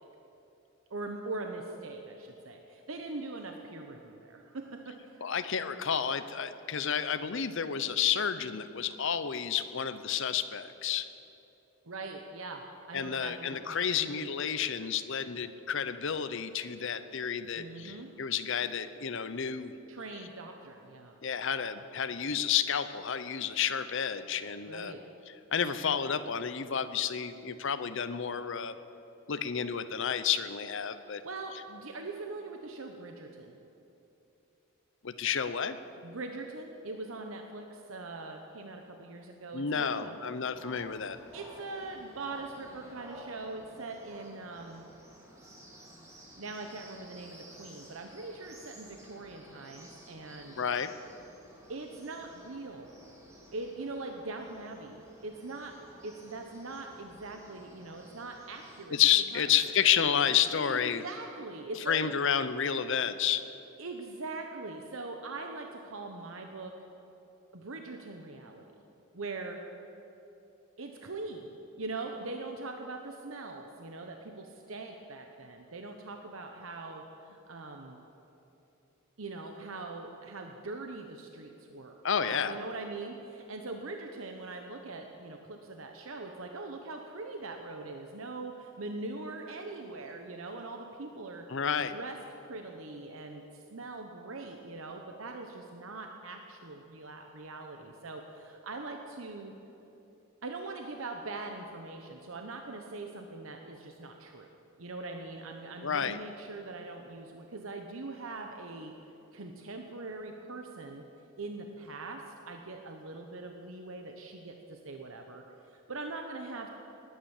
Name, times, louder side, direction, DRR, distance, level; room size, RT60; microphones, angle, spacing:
voice 1, 0.9-5.3 11.8-14.1 17.5-18.1 19.9-21.2 24.7-25.0 31.1-33.5 36.0-40.1 41.3-44.8 46.4-50.6 51.7-52.9 53.5-55.7 56.0-59.0 59.3-59.7 60.5-62.1 63.8-66.7 67.5-68.6 69.1-69.6 70.8-71.5 71.8-78.0 79.2-82.0 82.2-91.6 91.9-99.5 100.4-104.5 104.8-108.9 109.3-111.0 111.4-115.4 115.7-116.7, right 3 dB, 70° right, 3 dB, 1.1 m, -42 dB
voice 2, 5.2-11.1 12.9-19.8 21.2-24.9 25.5-28.7 29.3-31.2 35.0-35.8 39.5-41.2 50.6-50.9 58.9-61.0 61.9-63.4 82.0-82.6 91.5-92.0 105.8-106.2, left 8 dB, 60° left, 11 dB, 0.7 m, -30 dB
sound 1, 40.5-58.9, equal, 15° right, 2.6 m, -53 dB
19.5 x 10.0 x 7.2 m, 3.0 s
head